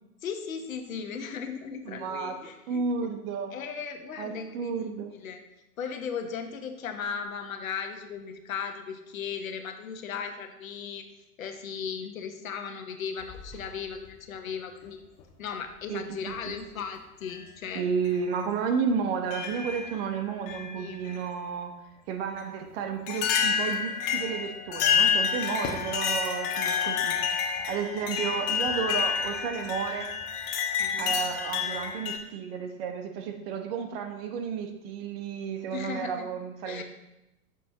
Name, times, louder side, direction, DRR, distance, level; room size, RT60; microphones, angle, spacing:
voice 1, 0.2-2.8 3.5-4.9 5.1-5.4 5.8-11.1 11.4-15.0 15.4-17.8 20.8-21.0 26.8-26.9 30.8-31.2 35.7-36.3 36.6-36.8, left 6 dB, 60° left, 6 dB, 1.2 m, -37 dB
voice 2, 1.8-2.4 2.7-3.6 4.2-5.1 15.9-16.5 17.7-21.7 22.1-30.1 31.0-36.8, right 6 dB, 40° right, 5 dB, 1.0 m, -32 dB
sound 1, 13.2-14.1 15.2-15.3 16.3-16.6 17.2-17.4 18.0-18.2 19.3-20.0 20.5-21.2 22.4-22.5 23.1-32.2, left 6 dB, 35° left, 1.2 m, -29 dB
13.5 x 6.3 x 3.0 m, 0.92 s
figure-of-eight pair, 95°, 46 cm